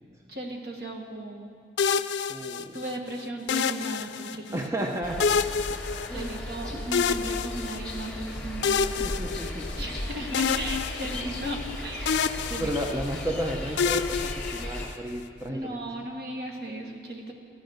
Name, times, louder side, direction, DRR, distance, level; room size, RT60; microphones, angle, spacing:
voice 1, 0.3-1.5 2.4-4.8 6.1-9.0 9.7-12.1 12.4-12.7 15.5-17.3, right 1 dB, 60° right, 2 dB, 1.6 m, -36 dB
sound 1, 1.8-2.9 3.5-4.6 5.2-6.6 6.9-8.1 8.6-10.0 10.3-11.7 12.1-13.3 13.8-15.1, left 6 dB, 85° left, 0.4 m, -28 dB
voice 2, 2.3-2.8 4.5-5.3 6.1-6.3 6.7-6.8 8.6-9.9 12.3-15.8, equal, 15° right, 1 dB, 0.8 m, -33 dB
sound 2, 5.0-14.9, left 1 dB, 5° left, 2.5 m, -36 dB
14.0 x 11.5 x 6.4 m, 2.4 s
head